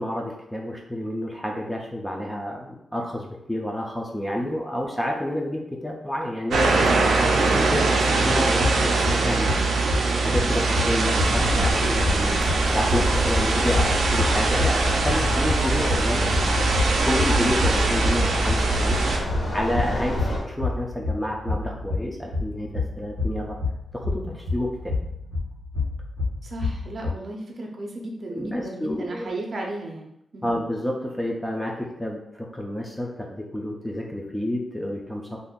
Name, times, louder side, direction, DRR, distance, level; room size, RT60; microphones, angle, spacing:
voice 1, 0.0-7.0 7.4-9.5 10.2-16.3 17.0-19.0 19.5-23.6 23.9-24.9 28.3-29.3 30.4-35.4, left 1 dB, 5° left, -1 dB, 0.4 m, -29 dB
voice 2, 4.4-4.7 10.6-10.8 17.4-17.9 26.4-30.6, right 2 dB, 50° right, 0 dB, 0.6 m, -35 dB
sound 1, 6.5-19.2, right 3 dB, 90° right, 0.4 m, -22 dB
sound 2, 8.2-27.1, left 3 dB, 90° left, 1.1 m, -29 dB
sound 3, 11.2-20.4, left 1 dB, 70° left, 1.3 m, -27 dB
2.6 x 2.4 x 3.7 m, 0.80 s
wide cardioid pair, 130°, 0 cm